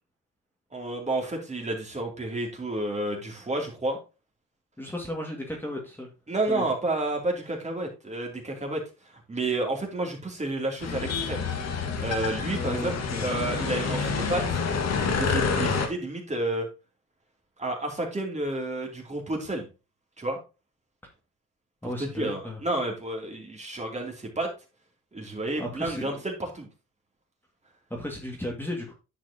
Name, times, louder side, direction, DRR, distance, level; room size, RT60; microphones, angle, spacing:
voice 1, 0.7-4.0 6.3-8.8 9.1-11.5 12.0-12.9 13.2-14.4 15.0-16.7 17.6-19.7 20.2-20.4 21.8-24.5 25.1-26.7, right 2 dB, 25° right, 1 dB, 2.8 m, -30 dB
voice 2, 4.8-6.1 6.5-6.7 12.5-13.3 21.8-22.6 25.6-26.2 27.9-28.9, left 1 dB, 5° left, -1 dB, 2.1 m, -35 dB
sound 1, 10.8-15.9, left 5 dB, 60° left, 1.8 m, -28 dB
10.5 x 6.2 x 2.8 m, 0.30 s
cardioid pair, 90°, 30 cm